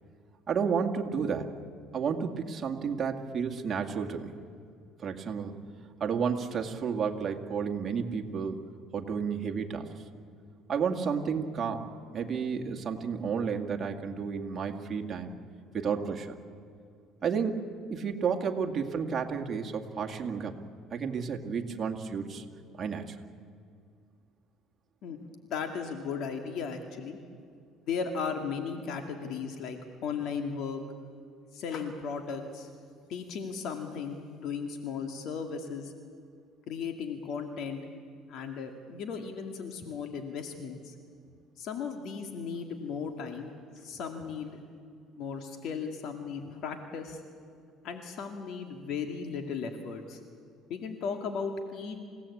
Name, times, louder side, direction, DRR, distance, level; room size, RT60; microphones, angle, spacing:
voice 1, 0.5-1.5 1.9-4.3 5.0-5.6 6.0-8.6 8.9-9.9 10.7-11.9 12.1-15.4 15.7-16.4 17.2-20.6 20.9-22.4 22.7-23.2, right 6 dB, 35° right, 2 dB, 2.2 m, -31 dB
voice 2, 25.0-27.2 27.8-30.8 31.5-32.7 33.1-35.9 36.7-37.8 38.3-40.9 41.6-44.6 45.2-47.2 47.8-50.2 50.7-52.0, left 6 dB, 60° left, 5 dB, 2.2 m, -36 dB
28.0 x 17.0 x 8.6 m, 2.3 s
cardioid pair, 115°, 0 cm